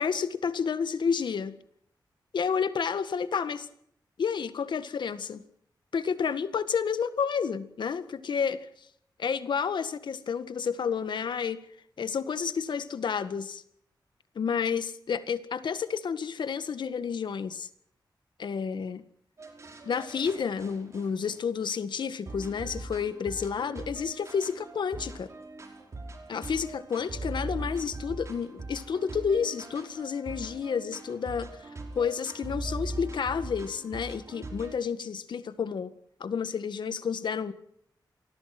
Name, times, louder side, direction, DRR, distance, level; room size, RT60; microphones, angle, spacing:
voice 1, 0.0-1.5 2.3-3.7 4.2-5.4 5.9-8.9 9.2-11.6 12.0-13.6 14.4-17.7 18.4-19.0 19.8-25.3 26.3-31.7 32.0-35.9 36.2-37.5, left 6 dB, 80° left, 12 dB, 1.8 m, -30 dB
sound 1, 19.4-21.7 22.3-34.7, right 2 dB, 40° right, 5.2 m, -41 dB
27.5 x 20.0 x 6.1 m, 0.69 s
wide cardioid pair, 170°, 8 cm